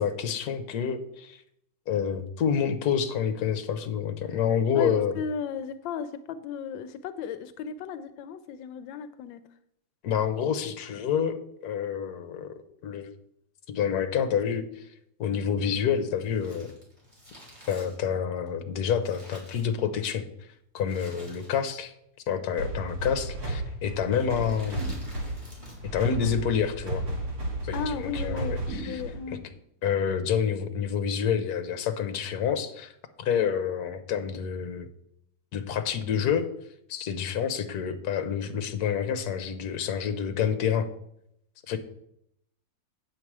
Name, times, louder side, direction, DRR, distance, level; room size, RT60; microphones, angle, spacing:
voice 1, 0.0-1.4 1.9-5.2 10.0-11.4 11.6-12.5 12.8-13.1 13.7-14.9 15.2-16.7 17.7-20.3 20.7-21.9 22.3-24.9 25.9-27.0 27.6-29.0 29.8-32.9 33.2-34.9 35.5-36.5 36.9-40.9 41.7-41.8, left 7 dB, 60° left, 8 dB, 1.2 m, -28 dB
voice 2, 4.7-9.4 27.7-29.5, left 6 dB, 85° left, 12 dB, 1.3 m, -35 dB
Crumpling crinkling, 16.2-20.2 20.8-21.9 22.1-22.2 23.0-23.4 24.1-26.0 26.2-26.3, equal, 15° right, 2.8 m, -50 dB
sound 1, 22.6-29.3, right 1 dB, 85° right, 2.9 m, -33 dB
sound 2, 24.8-25.6 28.7-29.6, right 2 dB, 40° right, 2.9 m, -42 dB
8.8 x 7.1 x 4.7 m, 0.76 s
omnidirectional pair, 2.0 m